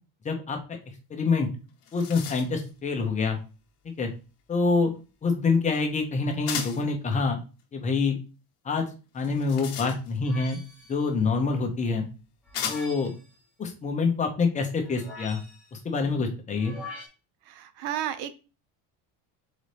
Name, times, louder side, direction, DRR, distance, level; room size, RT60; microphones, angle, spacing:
voice 1, 0.2-0.6 1.1-1.5 1.9-3.4 3.8-4.1 4.5-4.9 5.2-7.4 7.7-8.2 8.6-8.9 9.1-10.6 10.9-12.1 12.7-13.1 13.6-15.4 15.8-16.7, left 4 dB, 20° left, 3 dB, 0.7 m, -26 dB
sound 1, 1.3-1.4 1.7-2.7 6.5-6.9 9.2-10.3 11.4-11.5 12.5-13.1, left 7 dB, 40° left, 1.0 m, -35 dB
sound 2, 10.2-11.0 12.5-13.2 14.8-15.8 16.6-17.1, left 3 dB, 5° right, 1.1 m, -43 dB
voice 2, 17.5-18.3, right 11 dB, 75° right, 12 dB, 0.7 m, -32 dB
4.1 x 3.9 x 3.3 m, 0.33 s
cardioid pair, 165°, 38 cm